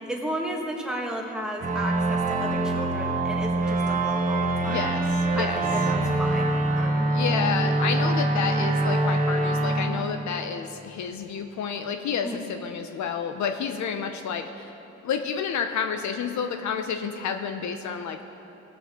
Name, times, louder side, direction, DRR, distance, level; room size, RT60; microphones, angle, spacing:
voice 1, 0.0-4.9 5.3-7.1 12.2-12.4, equal, ahead, -1 dB, 1.7 m, -34 dB
sound 1, 1.6-10.9, right 2 dB, 25° right, 1.1 m, -25 dB
voice 2, 4.7-5.0 5.3-5.6 7.1-14.7 15.0-18.2, left 6 dB, 70° left, 7 dB, 0.7 m, -30 dB
18.5 x 7.0 x 3.7 m, 2.9 s
cardioid pair, 90°, 30 cm